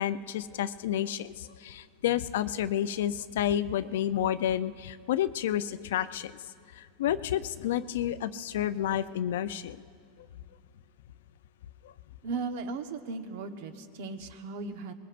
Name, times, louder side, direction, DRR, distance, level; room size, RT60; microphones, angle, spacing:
voice 1, 0.0-6.3 6.7-9.8, left 11 dB, 85° left, 13 dB, 0.5 m, -30 dB
voice 2, 12.2-14.9, right 4 dB, 65° right, 7 dB, 1.1 m, -36 dB
24.0 x 21.0 x 2.6 m, 2.3 s
supercardioid pair, 160°, 0 cm